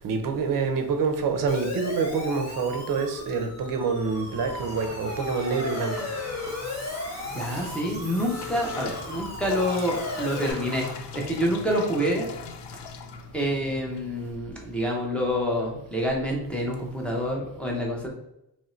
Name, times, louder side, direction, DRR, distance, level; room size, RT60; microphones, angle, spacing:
voice 1, 0.0-6.1, right 5 dB, 50° right, 5 dB, 0.6 m, -27 dB
Siren, 1.5-10.5, left 3 dB, 35° left, 0.8 m, -36 dB
sound 1, 4.0-11.5, right 1 dB, 15° right, 1.3 m, -43 dB
voice 2, 7.3-10.9 11.1-12.3 13.3-18.1, equal, 5° left, -2 dB, 0.6 m, -27 dB
sound 2, 7.4-14.3, left 5 dB, 75° left, 0.5 m, -41 dB
3.1 x 2.6 x 4.2 m, 0.82 s
cardioid pair, 180°, 42 cm